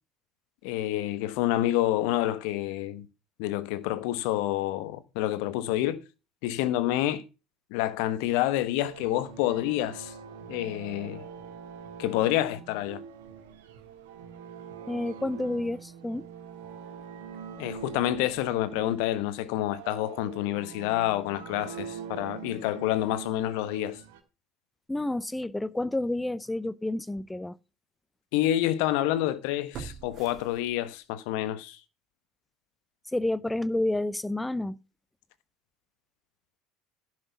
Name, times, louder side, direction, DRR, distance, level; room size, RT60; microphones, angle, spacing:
voice 1, 0.6-3.1 3.4-6.0 6.4-7.2 7.7-10.1 10.5-11.3 12.0-13.0 17.6-24.0 28.3-31.8, left 14 dB, 65° left, 1.1 m, -28 dB
sound 1, 8.8-24.2, right 7 dB, 75° right, 1.6 m, -43 dB
voice 2, 14.9-16.3 24.9-27.5 33.1-34.8, left 1 dB, 10° left, 0.6 m, -30 dB
sound 2, 26.4-26.6 27.2-27.3 29.7-31.2 31.6-31.7, right 8 dB, 50° right, 1.7 m, -44 dB
11.0 x 6.4 x 5.9 m
hypercardioid pair, 70°, 0 cm